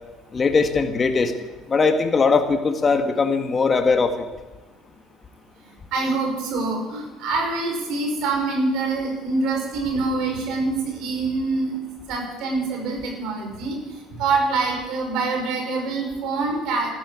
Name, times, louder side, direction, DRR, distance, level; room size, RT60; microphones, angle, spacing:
voice 1, 0.3-1.3 1.7-4.1, left 4 dB, 30° left, 6 dB, 1.9 m, -20 dB
voice 2, 5.9-11.7 12.1-13.8 14.2-16.9, right 3 dB, 65° right, 1 dB, 5.7 m, -25 dB
13.0 x 12.5 x 8.9 m, 1.1 s
hypercardioid pair, 70°, 0 cm